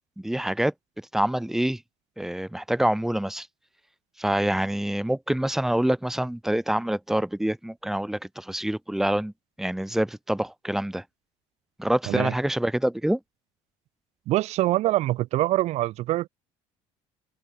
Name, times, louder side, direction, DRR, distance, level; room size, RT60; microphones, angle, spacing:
voice 1, 0.2-0.7 1.1-1.8 2.2-3.5 4.2-9.3 9.6-11.0 11.8-13.2, right 1 dB, 5° right, 6.7 m, -26 dB
voice 2, 14.3-16.3, right 16 dB, 65° right, 6.3 m, -24 dB
open air
cardioid pair, 145°, 12 cm